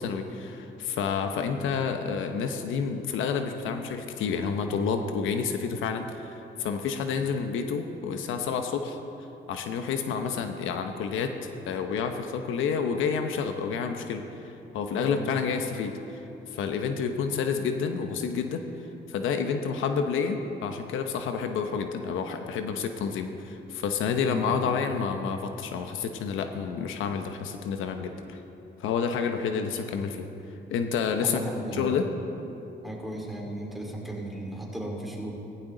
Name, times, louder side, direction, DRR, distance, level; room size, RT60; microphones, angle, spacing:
voice 1, 0.0-9.0 9.5-11.3 11.6-15.9 16.5-18.6 19.1-28.4 28.8-30.3 30.7-31.4 31.7-32.1, left 6 dB, 85° left, 6 dB, 0.9 m, -29 dB
voice 2, 14.9-15.3 24.2-24.6 31.2-31.9 32.8-35.3, right 1 dB, ahead, -2 dB, 3.1 m, -35 dB
16.5 x 15.5 x 3.9 m, 3.0 s
cardioid pair, 90°, 20 cm